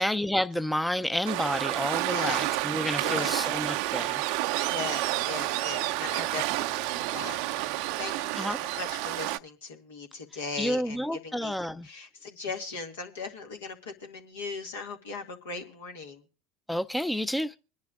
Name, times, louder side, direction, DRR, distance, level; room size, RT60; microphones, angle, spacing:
voice 1, 0.0-4.2 8.3-8.6 10.6-11.9 16.7-17.6, equal, 5° left, 0.5 m, -30 dB
Waves surf, 1.2-9.4, right 17 dB, 65° right, 0.5 m, -30 dB
voice 2, 2.1-2.4 3.0-3.3 4.7-7.7 8.0-11.5 11.8-16.2, left 4 dB, 80° left, 2.0 m, -38 dB
25.5 x 10.5 x 2.4 m
hypercardioid pair, 80°, 0 cm